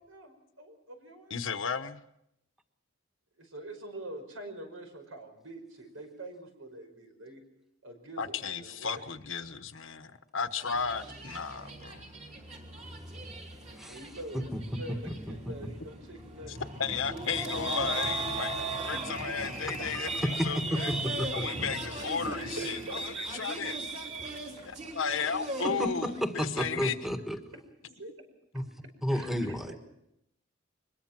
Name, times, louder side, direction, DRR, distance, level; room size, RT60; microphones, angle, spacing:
voice 1, 0.0-1.4 3.4-7.4 7.8-8.9 11.5-11.6 13.7-16.6 17.0-17.7 18.4-18.7 19.0-19.1 19.8-19.9 21.9-23.3 24.5-24.6 26.7-26.9 27.5-27.6 27.9-28.1 29.1-29.8, right 1 dB, 85° right, 6 dB, 5.5 m, -45 dB
voice 2, 1.3-2.0 8.2-12.1 16.5-18.5 18.8-20.9 21.3-23.9 24.6-26.9, left 6 dB, 75° left, 11 dB, 1.2 m, -34 dB
sound 1, 10.6-26.2, right 2 dB, 35° right, 3.4 m, -38 dB
voice 3, 19.9-20.5 21.0-21.7 25.8-27.4 28.5-28.6 29.0-29.7, equal, ahead, 6 dB, 1.6 m, -32 dB
24.0 x 21.5 x 6.0 m, 0.80 s
head